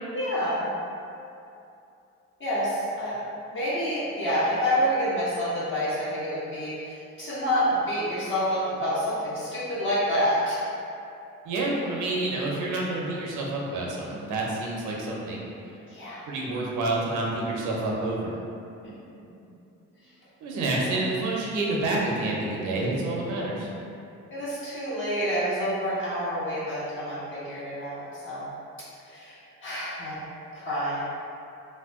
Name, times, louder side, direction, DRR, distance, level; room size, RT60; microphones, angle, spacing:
voice 1, 0.1-0.7 2.4-3.2 3.5-10.9 15.9-16.2 18.8-18.9 20.6-21.1 24.3-28.5 29.0-30.2 30.5-31.0, equal, 40° left, -10 dB, 1.3 m, -28 dB
voice 2, 11.4-15.4 16.3-18.4 20.4-23.7, right 2 dB, 90° right, -3 dB, 0.6 m, -28 dB
2.8 x 2.2 x 3.5 m, 2.7 s
cardioid pair, 90°, 30 cm